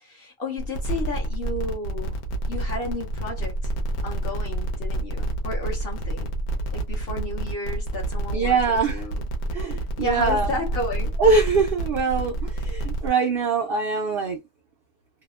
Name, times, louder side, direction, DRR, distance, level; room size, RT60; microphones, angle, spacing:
voice 1, 0.0-2.2 2.5-3.7 4.0-6.3 6.7-8.6 8.9-9.3 9.7-11.1, left 2 dB, 50° left, 0.8 m, -32 dB
sound 1, 0.6-13.1, right 2 dB, 85° left, 1.2 m, -28 dB
voice 2, 8.3-9.1 9.5-10.5 11.2-14.4, right 4 dB, 85° right, 0.5 m, -23 dB
2.8 x 2.0 x 2.3 m
omnidirectional pair, 1.6 m